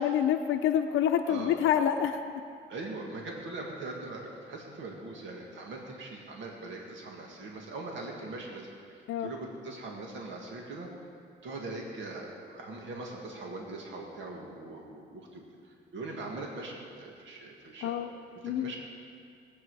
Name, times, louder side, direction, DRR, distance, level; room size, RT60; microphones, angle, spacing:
voice 1, 0.0-2.4 9.1-9.3 17.8-18.1 18.4-18.7, left 9 dB, 80° left, 5 dB, 0.6 m, -27 dB
voice 2, 2.7-10.9 11.4-17.9 18.4-18.8, right 2 dB, 70° right, -1 dB, 2.0 m, -41 dB
20.0 x 8.5 x 4.8 m, 2.3 s
cardioid pair, 90°, 20 cm